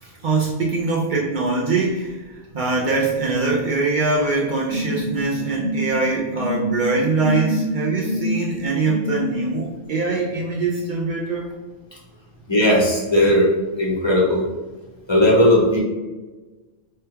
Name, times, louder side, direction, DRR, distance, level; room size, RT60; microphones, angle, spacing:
voice 1, 0.0-11.5, right 3 dB, 65° right, -2 dB, 0.5 m, -23 dB
sound 1, 4.7-9.5, equal, 85° left, 1.1 m, -26 dB
voice 2, 12.5-13.5 13.8-14.5 15.1-15.8, left 1 dB, 35° left, -4 dB, 0.4 m, -16 dB
3.1 x 2.2 x 3.3 m, 1.2 s
omnidirectional pair, 1.3 m